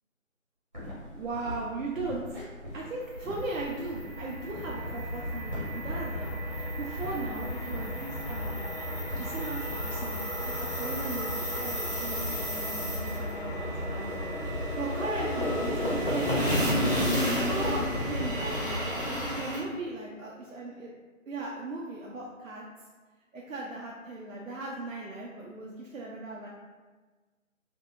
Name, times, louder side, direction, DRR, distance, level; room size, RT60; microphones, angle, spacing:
sound 1, 0.7-9.2, left 1 dB, 35° right, 0.9 m, -42 dB
voice 1, 1.1-2.2 2.7-6.4 6.8-8.7 9.2-16.7 17.4-20.9 21.3-22.6 23.3-26.5, right 2 dB, 80° right, -3 dB, 0.5 m, -38 dB
sound 2, 3.1-19.6, equal, 45° left, 0.5 m, -33 dB
sound 3, 3.4-19.5, equal, 85° left, 0.8 m, -37 dB
2.6 x 2.3 x 2.6 m, 1.3 s
figure-of-eight pair, 175°, 40 cm